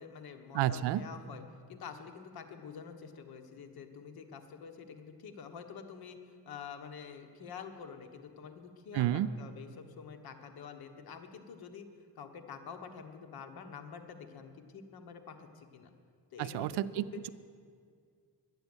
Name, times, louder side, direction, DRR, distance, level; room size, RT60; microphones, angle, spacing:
voice 1, 0.0-1.4 1.7-11.9 12.2-15.9 16.3-17.2, left 6 dB, 65° left, 6 dB, 1.3 m, -47 dB
voice 2, 0.5-1.0 8.9-9.3 16.4-17.3, right 13 dB, 85° right, 15 dB, 0.5 m, -31 dB
12.0 x 9.1 x 8.0 m, 2.1 s
cardioid pair, 105°, 40 cm